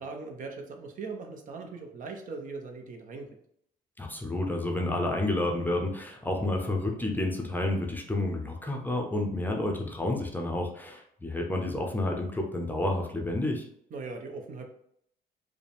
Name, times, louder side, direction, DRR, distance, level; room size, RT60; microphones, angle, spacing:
voice 1, 0.0-3.3 13.9-14.7, right 4 dB, 50° right, 3 dB, 0.8 m, -40 dB
voice 2, 4.0-13.7, left 1 dB, 10° left, 1 dB, 0.6 m, -30 dB
4.9 x 2.2 x 3.4 m, 0.69 s
cardioid pair, 110°, 17 cm